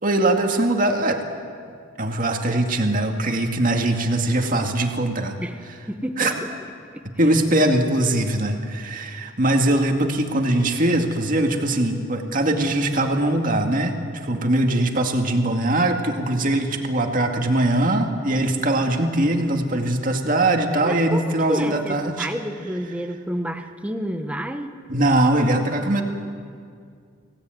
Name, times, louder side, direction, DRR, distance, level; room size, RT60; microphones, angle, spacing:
voice 1, 0.0-1.2 2.0-5.4 6.2-6.3 7.2-13.9 14.3-22.3 24.9-26.0, right 1 dB, 45° right, 3 dB, 2.2 m, -21 dB
voice 2, 5.4-6.5 6.9-7.3 20.8-24.7, equal, 5° right, 6 dB, 1.2 m, -30 dB
24.5 x 17.0 x 9.3 m, 2.2 s
head